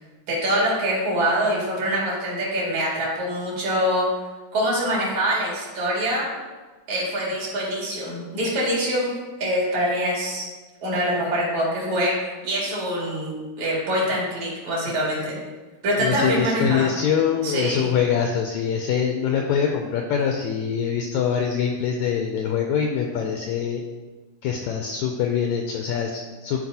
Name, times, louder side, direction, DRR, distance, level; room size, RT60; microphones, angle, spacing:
voice 1, 0.3-4.0 4.5-6.3 6.9-9.1 9.4-10.5 10.8-12.1 12.4-15.4 15.8-16.9 17.4-17.9, equal, 60° right, -5 dB, 3.4 m, -24 dB
voice 2, 16.0-23.8 24.4-26.6, left 7 dB, 85° left, 2 dB, 1.6 m, -24 dB
12.0 x 4.6 x 2.8 m, 1.3 s
omnidirectional pair, 3.8 m